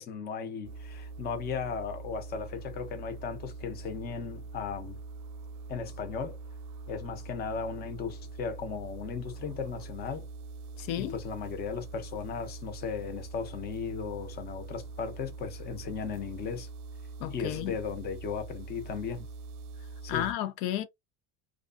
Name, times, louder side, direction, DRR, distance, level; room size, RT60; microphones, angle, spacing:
voice 1, 0.0-5.0 5.7-6.4 6.9-10.3 11.0-16.7 17.3-19.3 20.0-20.3, left 6 dB, 30° left, 0.5 m, -36 dB
sound 1, 0.6-20.3, right 3 dB, 80° right, 0.5 m, -43 dB
voice 2, 10.8-11.1 17.2-17.8 20.1-20.8, left 12 dB, 80° left, 0.5 m, -32 dB
2.5 x 2.3 x 2.4 m
cardioid pair, 170°, 34 cm